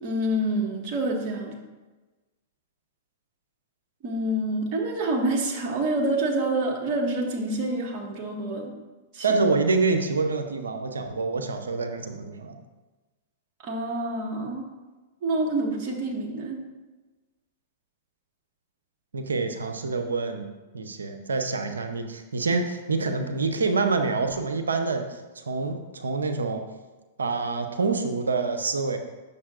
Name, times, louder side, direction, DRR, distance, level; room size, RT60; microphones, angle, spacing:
voice 1, 0.0-1.6 4.0-8.7 9.1-9.4 13.6-14.7 15.2-16.6, right 1 dB, 45° right, -1 dB, 1.6 m, -27 dB
voice 2, 9.2-12.5 19.1-20.5 20.7-25.1 25.4-26.6 27.2-29.0, right 4 dB, 85° right, 7 dB, 0.6 m, -26 dB
8.5 x 6.6 x 2.4 m, 1.2 s
hypercardioid pair, 110°, 0 cm